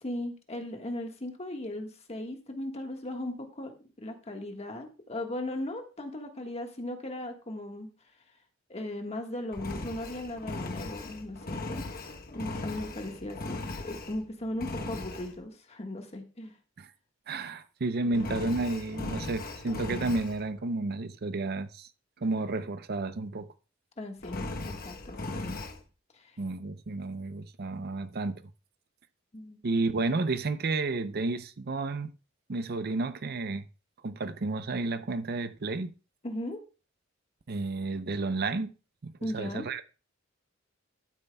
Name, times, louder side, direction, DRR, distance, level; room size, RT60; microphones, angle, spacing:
voice 1, 0.0-7.9 8.7-11.9 12.3-16.5 18.0-18.3 24.0-25.6 26.1-26.4 29.3-29.6 36.2-36.6 39.2-39.7, left 1 dB, 35° left, 1.5 m, -37 dB
Engine, 9.5-14.2 14.6-15.3 18.1-20.4 24.2-25.8, left 2 dB, 50° left, 1.0 m, -38 dB
voice 2, 17.3-21.9 22.2-23.5 26.4-28.4 29.6-32.1 32.5-33.6 34.0-35.9 37.5-38.7 39.0-39.8, right 3 dB, 55° right, 0.6 m, -31 dB
12.0 x 9.1 x 2.3 m
head